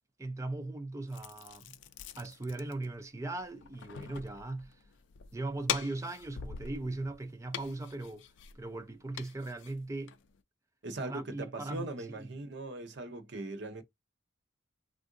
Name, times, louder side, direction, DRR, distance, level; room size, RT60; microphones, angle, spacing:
voice 1, 0.2-1.8 2.2-4.8 5.3-8.3 8.5-10.1 11.0-11.9 12.2-12.3, right 2 dB, 15° right, 0.4 m, -39 dB
sound 1, 1.1-10.4, left 8 dB, 60° left, 0.4 m, -43 dB
voice 2, 10.8-13.8, right 2 dB, 60° right, 0.7 m, -40 dB
3.6 x 2.5 x 2.5 m
head